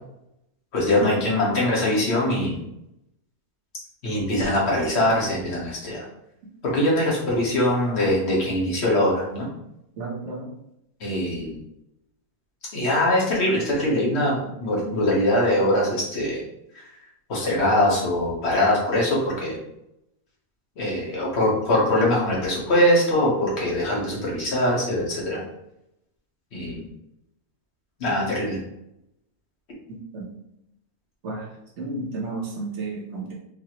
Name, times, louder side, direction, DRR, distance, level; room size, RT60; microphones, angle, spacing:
voice 1, 0.7-2.6 4.0-6.0 6.6-9.5 11.0-11.6 12.7-16.4 17.3-19.6 20.8-25.4 26.5-26.9 28.0-28.6, left 1 dB, 50° left, -4 dB, 1.2 m, -22 dB
voice 2, 10.0-10.5 29.9-30.3 31.2-31.5 31.8-33.3, right 3 dB, 55° right, -1 dB, 1.0 m, -32 dB
4.0 x 2.1 x 2.9 m, 0.83 s
omnidirectional pair, 1.6 m